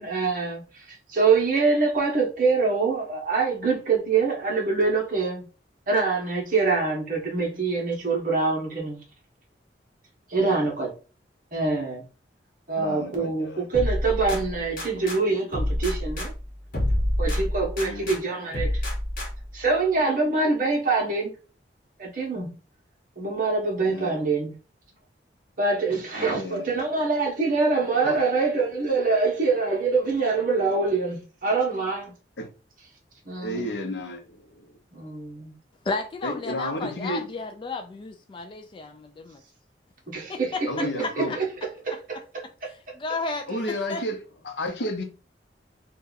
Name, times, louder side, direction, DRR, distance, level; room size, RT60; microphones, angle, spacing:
voice 1, 0.0-5.5 5.9-9.0 10.3-10.9 11.5-12.0 12.7-16.3 17.2-18.8 19.5-21.3 22.0-22.5 23.2-24.5 25.6-32.1 33.2-33.7 34.9-35.5 40.1-40.9 41.2-41.5 41.8-42.9, right 4 dB, 50° right, 1.1 m, -25 dB
voice 2, 10.3-10.7 12.8-13.7 17.8-18.1 23.9-24.1 26.2-26.7 28.0-28.2 32.4-32.5 33.4-34.7 36.2-37.2 40.7-41.3 43.5-44.2 44.4-45.0, left 1 dB, 70° left, 0.8 m, -32 dB
sound 1, 13.7-15.2 15.5-18.2 18.5-19.6, left 1 dB, 50° left, 1.1 m, -28 dB
voice 3, 35.8-39.4 40.3-41.4 42.7-44.0, left 3 dB, 30° left, 0.3 m, -33 dB
2.7 x 2.3 x 3.9 m
head